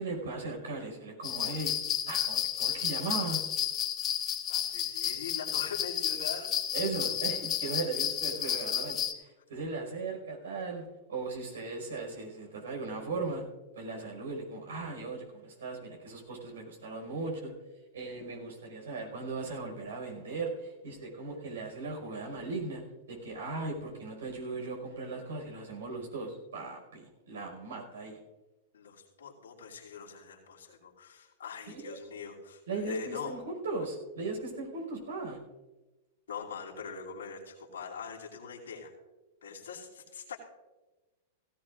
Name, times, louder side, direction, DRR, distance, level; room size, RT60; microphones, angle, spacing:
voice 1, 0.0-1.8 2.1-3.4 6.7-13.4 13.8-17.5 17.9-22.8 23.1-28.2 31.7-32.0 32.7-35.4, right 3 dB, 80° right, 1 dB, 5.2 m, -38 dB
sound 1, 1.2-9.1, left 10 dB, 30° left, 1.3 m, -32 dB
voice 2, 4.5-6.5 28.7-33.4 36.3-38.9 39.4-40.4, left 6 dB, 85° left, -3 dB, 2.8 m, -42 dB
17.0 x 16.5 x 2.5 m, 1.1 s
hypercardioid pair, 115°, 0 cm